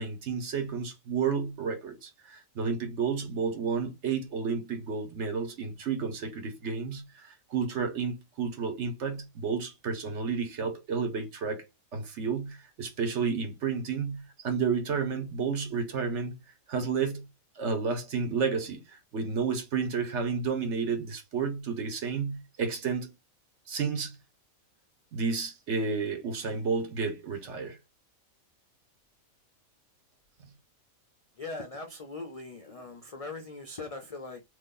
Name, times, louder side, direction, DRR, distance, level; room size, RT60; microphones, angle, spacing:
voice 1, 0.0-11.6 11.9-16.4 16.7-17.2 17.6-23.1 23.7-24.2 25.1-27.8, right 5 dB, 60° right, 1.2 m, -31 dB
voice 2, 31.4-34.4, left 3 dB, 55° left, 0.4 m, -40 dB
3.1 x 2.6 x 3.7 m
omnidirectional pair, 1.4 m